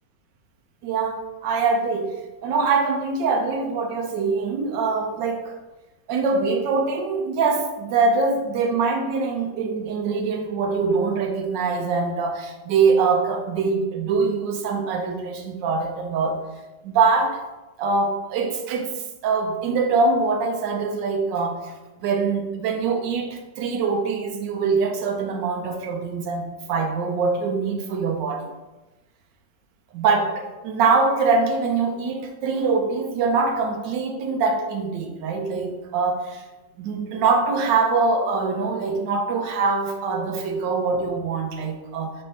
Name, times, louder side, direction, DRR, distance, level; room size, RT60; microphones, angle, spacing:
voice 1, 0.8-2.1 2.4-5.5 6.1-16.4 16.8-17.4 17.8-28.5 29.9-36.4 36.8-42.1, right 4 dB, 85° right, 4 dB, 1.4 m, -23 dB
4.3 x 4.1 x 5.6 m, 1.1 s
omnidirectional pair, 1.9 m